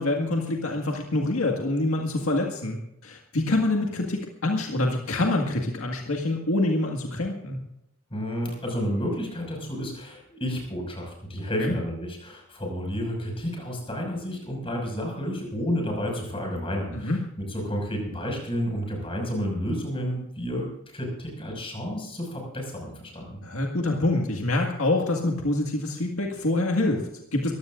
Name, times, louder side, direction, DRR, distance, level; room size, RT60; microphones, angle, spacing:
voice 1, 0.0-2.8 3.0-7.6 11.6-11.8 16.9-17.2 23.4-27.5, left 2 dB, 70° left, 1 dB, 1.9 m, -26 dB
voice 2, 8.1-20.7 20.9-23.4, equal, 25° left, 1 dB, 5.9 m, -31 dB
23.0 x 16.0 x 2.6 m, 0.80 s
head